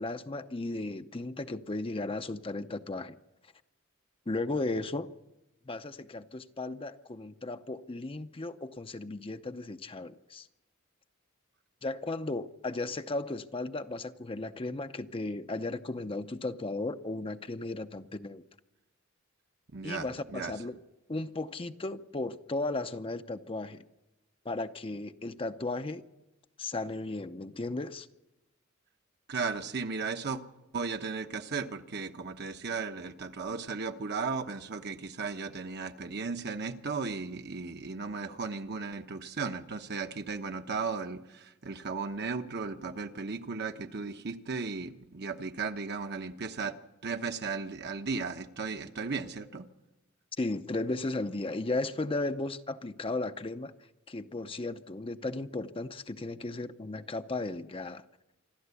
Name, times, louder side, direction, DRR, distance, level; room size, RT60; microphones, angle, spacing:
voice 1, 0.0-3.2 4.3-5.1 5.7-10.5 11.8-18.4 19.8-20.8 21.1-23.8 24.4-26.0 26.6-28.1 50.4-53.7 54.1-58.0, left 2 dB, 25° left, 0.6 m, -35 dB
voice 2, 19.7-20.5 29.3-30.4 30.7-46.7 47.0-49.7, right 4 dB, 50° right, 1.0 m, -35 dB
26.0 x 12.5 x 8.3 m
head